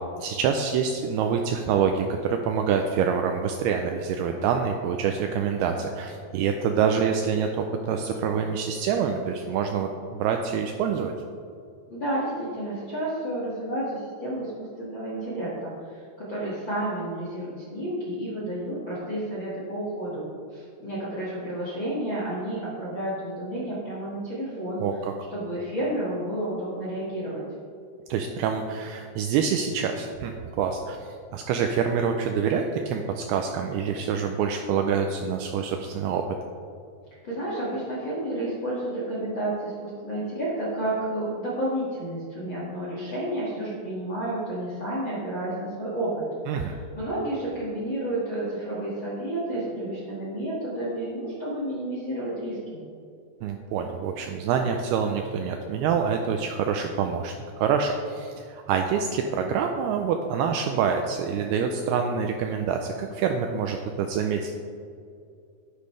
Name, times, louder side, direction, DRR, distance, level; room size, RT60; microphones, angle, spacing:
voice 1, 0.2-11.1 24.8-25.1 28.1-36.2 46.5-46.7 53.4-64.5, right 6 dB, 90° right, 4 dB, 2.3 m, -26 dB
voice 2, 11.9-20.2 20.5-24.8 25.3-27.4 37.2-52.8, right 1 dB, 50° left, -8 dB, 1.5 m, -31 dB
10.5 x 10.5 x 3.3 m, 2.4 s
omnidirectional pair, 5.1 m